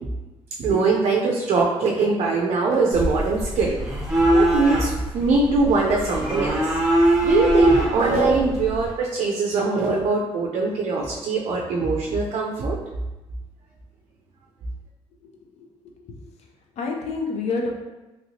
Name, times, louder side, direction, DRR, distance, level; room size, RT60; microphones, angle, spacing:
voice 1, 0.6-3.8 4.3-6.7 7.2-12.8, right 3 dB, 65° right, -1 dB, 0.4 m, -22 dB
sound 1, 2.9-8.9, right 1 dB, 5° right, 1.1 m, -22 dB
voice 2, 15.2-15.7 16.8-17.7, left 4 dB, 70° left, 1 dB, 0.6 m, -28 dB
3.1 x 2.8 x 2.7 m, 1.1 s
cardioid pair, 100°, 11 cm